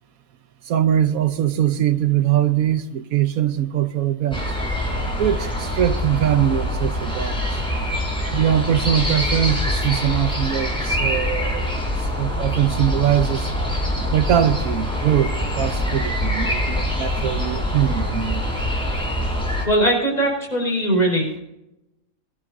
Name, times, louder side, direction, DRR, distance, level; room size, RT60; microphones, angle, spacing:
voice 1, 0.7-4.4 5.2-7.5 8.3-11.8 12.1-13.5 14.1-18.4, right 11 dB, 80° right, 1.2 m, -22 dB
sound 1, 4.3-19.6, left 1 dB, 5° left, 5.7 m, -24 dB
voice 2, 19.7-21.4, right 1 dB, 30° left, 4.8 m, -20 dB
23.0 x 12.5 x 2.6 m
omnidirectional pair, 1.5 m